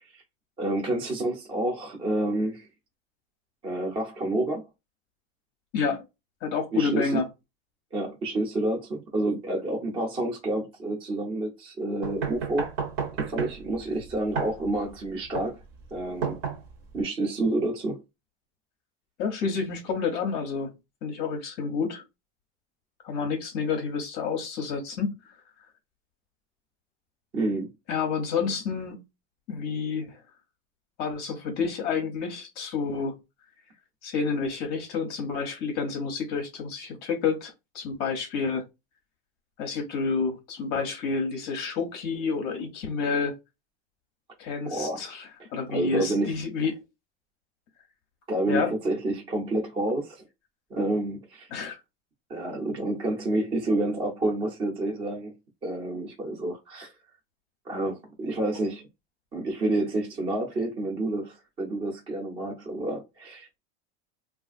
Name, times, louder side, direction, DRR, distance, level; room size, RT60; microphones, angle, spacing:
voice 1, 0.6-2.7 3.6-4.6 6.7-7.2 7.9-12.7 13.2-15.6 15.9-16.4 16.9-18.0 27.3-27.7 44.6-45.0 45.7-46.3 48.3-50.2 50.7-51.5 52.3-55.3 55.6-56.9 57.7-58.8 59.3-63.6, right 2 dB, 20° right, 0.5 m, -29 dB
voice 2, 5.7-6.0 6.4-7.3 19.2-20.7 21.0-22.0 23.0-25.1 27.9-29.0 29.5-30.2 31.0-33.2 34.0-38.6 39.6-43.4 44.4-46.7 48.5-48.7 51.5-51.8, left 5 dB, 35° left, 0.6 m, -29 dB
sound 1, 12.0-17.0, right 6 dB, 60° right, 0.9 m, -33 dB
3.2 x 2.4 x 2.5 m
cardioid pair, 180°, 30 cm